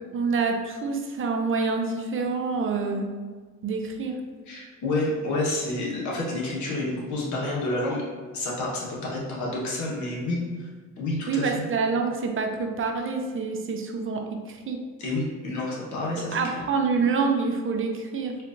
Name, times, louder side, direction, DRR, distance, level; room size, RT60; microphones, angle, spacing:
voice 1, 0.1-3.1 3.6-4.2 11.3-14.2 14.5-14.8 16.3-18.4, right 4 dB, 45° right, 3 dB, 0.5 m, -26 dB
voice 2, 4.5-8.0 8.3-10.4 11.0-11.7 15.0-16.4, left 2 dB, 75° left, -4 dB, 1.1 m, -29 dB
4.4 x 2.5 x 2.5 m, 1.5 s
cardioid pair, 90°, 30 cm